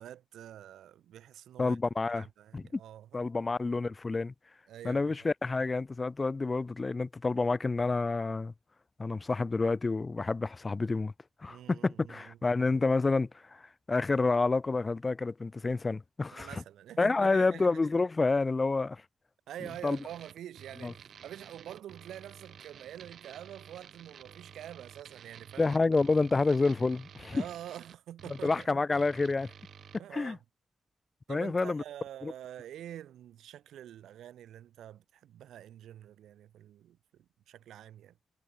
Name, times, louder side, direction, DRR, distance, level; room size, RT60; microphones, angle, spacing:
voice 1, 0.0-1.8 2.1-3.2 4.7-5.1 11.5-12.4 16.3-17.7 19.5-25.7 27.3-28.8 30.0-30.4 31.3-38.1, right 11 dB, 90° right, 1.0 m, -46 dB
voice 2, 1.6-2.3 2.5-2.6 3.1-4.3 4.8-8.5 9.0-11.1 11.4-13.6 13.9-16.6 17.0-19.0 19.8-20.0 20.8-20.9 25.6-27.4 28.4-29.5 30.1-30.4 31.3-31.8 32.2-32.3, left 3 dB, 35° left, 0.4 m, -28 dB
sound 1, 19.7-30.0, right 8 dB, 75° right, 1.9 m, -52 dB
cardioid pair, 60°, 0 cm